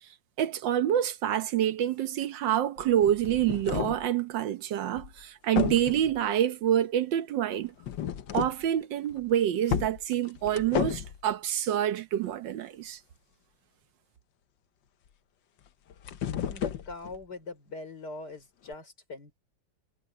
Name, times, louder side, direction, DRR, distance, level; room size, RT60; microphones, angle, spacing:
voice 1, 0.4-7.7 8.3-13.0, right 11 dB, 80° right, 1.6 m, -27 dB
sound 1, 2.8-4.1 5.0-5.2 5.6-6.2 7.8-8.7 9.1-9.2 9.7-11.2 15.7-17.2 18.7-18.8, left 9 dB, 90° left, 1.7 m, -33 dB
voice 2, 16.5-19.4, left 3 dB, 65° left, 5.0 m, -42 dB
omnidirectional pair, 2.0 m